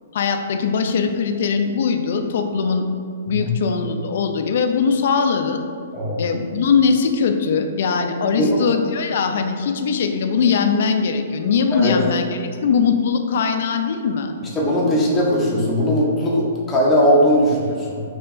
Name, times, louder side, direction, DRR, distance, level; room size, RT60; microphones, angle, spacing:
voice 1, 0.1-2.9 3.3-5.6 6.2-14.3, left 5 dB, 60° left, 6 dB, 0.3 m, -20 dB
voice 2, 14.5-18.0, equal, 15° left, -4 dB, 0.6 m, -19 dB
4.6 x 2.8 x 2.5 m, 2.3 s
hypercardioid pair, 155°, 0 cm